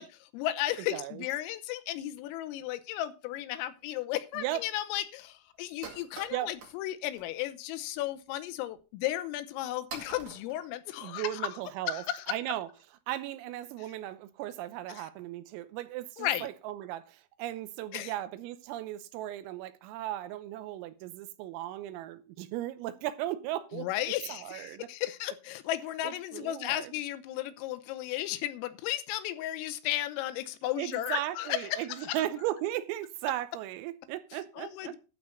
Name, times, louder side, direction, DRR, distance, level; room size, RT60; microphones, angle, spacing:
voice 1, 0.0-11.3 11.9-12.3 14.9-15.0 16.2-16.5 17.9-18.1 23.7-32.2 34.6-35.0, left 14 dB, 85° left, 3.5 m, -34 dB
voice 2, 0.9-1.3 4.4-4.6 6.3-6.5 11.0-12.7 13.1-23.9 24.3-24.9 26.0-26.9 30.8-35.0, right 14 dB, 90° right, 3.5 m, -36 dB
sound 1, 3.8-3.9 4.5-4.6 4.8-4.9 5.2-5.3 5.6-6.8 7.1-7.5 7.9-8.1 8.8-8.9 9.5-9.6 9.9-11.4, right 5 dB, 50° right, 2.3 m, -46 dB
12.0 x 4.4 x 7.8 m
omnidirectional pair, 6.0 m